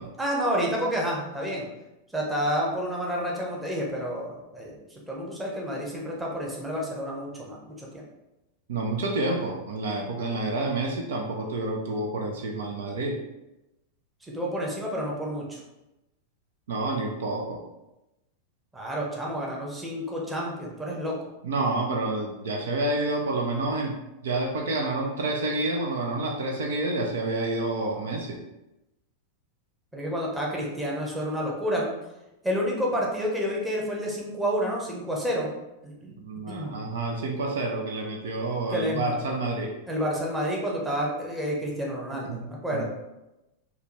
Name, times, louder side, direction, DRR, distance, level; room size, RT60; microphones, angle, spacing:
voice 1, 0.2-1.6 2.1-8.0 14.2-15.6 18.7-21.2 29.9-31.9 32.4-35.5 35.8-36.2 36.5-36.7 38.7-39.1 39.9-42.8, equal, 10° right, -3 dB, 0.9 m, -29 dB
voice 2, 8.7-13.2 16.7-17.6 21.4-24.0 24.2-28.4 36.2-39.7 42.3-42.8, right 2 dB, 60° right, 1 dB, 0.5 m, -29 dB
4.6 x 2.2 x 3.2 m, 0.96 s
figure-of-eight pair, 90°, 0 cm